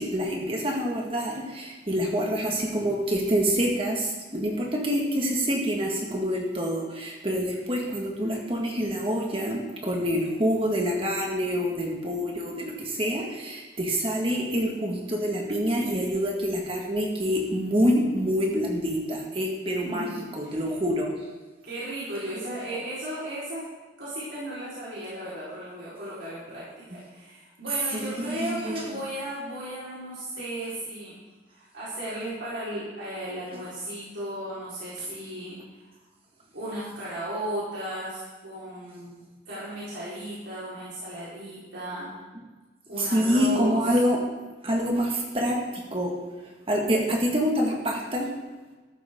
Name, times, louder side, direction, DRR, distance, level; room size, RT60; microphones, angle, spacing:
voice 1, 0.0-20.1 20.3-21.1 27.9-28.9 43.0-44.2 44.6-46.1 46.7-48.3, equal, 30° right, -1 dB, 1.9 m, -26 dB
voice 2, 19.8-20.6 21.6-23.6 24.0-31.2 31.5-35.6 36.5-39.2 39.5-42.1 42.9-43.9, right 1 dB, 75° right, -10 dB, 4.6 m, -35 dB
14.5 x 13.0 x 3.8 m, 1.2 s
head